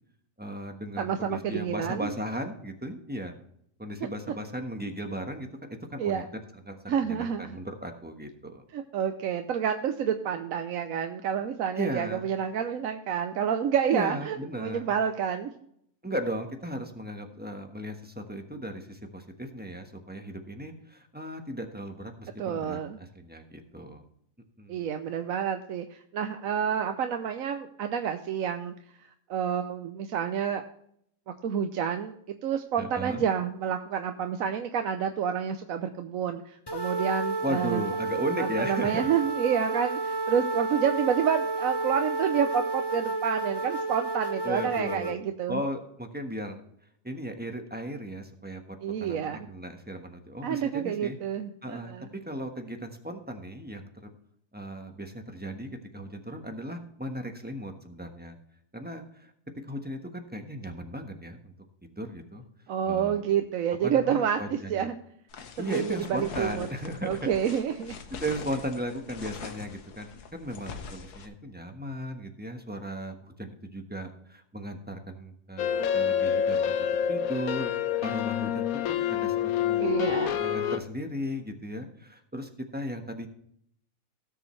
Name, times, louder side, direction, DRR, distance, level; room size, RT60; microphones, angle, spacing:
voice 1, 0.4-3.4 3.8-8.6 11.8-12.3 13.9-14.9 16.0-24.0 24.6-24.8 32.8-33.3 37.4-39.1 44.4-45.1 45.5-46.6 47.0-51.2 51.6-54.1 54.5-58.3 58.7-59.3 59.7-61.5 61.8-62.4 62.8-63.2 63.8-64.9 65.6-67.3 68.1-83.3, equal, 5° right, 4 dB, 1.1 m, -36 dB
voice 2, 1.0-2.1 6.0-6.3 6.9-7.6 8.7-15.5 22.4-23.0 24.7-28.7 29.0-30.6 31.3-32.1 32.4-37.8 38.4-45.6 48.8-49.5 50.4-52.1 62.7-65.0 65.6-66.7 67.0-68.0 79.8-80.4, right 8 dB, 65° right, 7 dB, 1.1 m, -29 dB
sound 1, 36.7-45.2, right 3 dB, 20° left, 0.9 m, -31 dB
sound 2, 65.3-71.3, left 6 dB, 85° left, 1.6 m, -43 dB
sound 3, 75.6-80.8, left 9 dB, 70° left, 1.1 m, -27 dB
17.5 x 6.9 x 3.2 m, 0.70 s
omnidirectional pair, 1.6 m